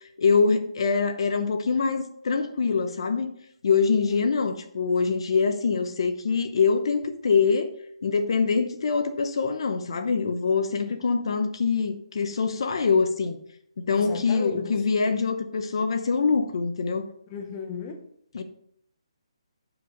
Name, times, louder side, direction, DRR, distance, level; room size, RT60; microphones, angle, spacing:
voice 1, 0.2-3.3 3.6-7.7 8.0-13.4 13.8-17.1 18.3-18.4, left 5 dB, 60° left, 0.9 m, -24 dB
voice 2, 13.9-14.7 17.3-18.0, left 6 dB, 25° left, 0.9 m, -36 dB
6.2 x 5.0 x 6.7 m
hypercardioid pair, 160°, 3 cm